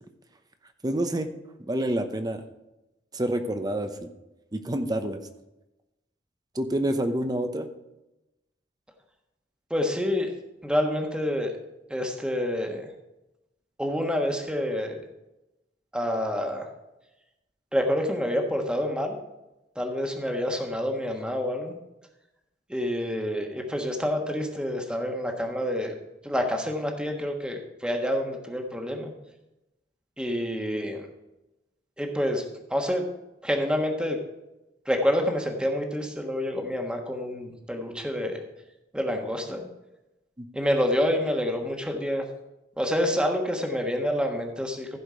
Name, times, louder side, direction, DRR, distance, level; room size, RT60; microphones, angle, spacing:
voice 1, 0.8-1.3 1.7-2.4 3.1-4.1 4.5-5.2 6.5-7.7 40.4-40.5, right 1 dB, 20° right, 8 dB, 0.8 m, -27 dB
voice 2, 9.7-10.3 10.6-11.5 11.9-12.9 13.8-15.0 15.9-16.7 17.7-19.2 19.7-21.7 22.7-25.9 26.2-29.1 30.2-31.1 32.0-32.4 32.7-33.0 33.4-34.2 34.9-38.4 38.9-39.6 40.5-42.2 42.8-45.0, equal, 5° right, 2 dB, 1.4 m, -27 dB
15.0 x 5.1 x 4.9 m, 0.96 s
head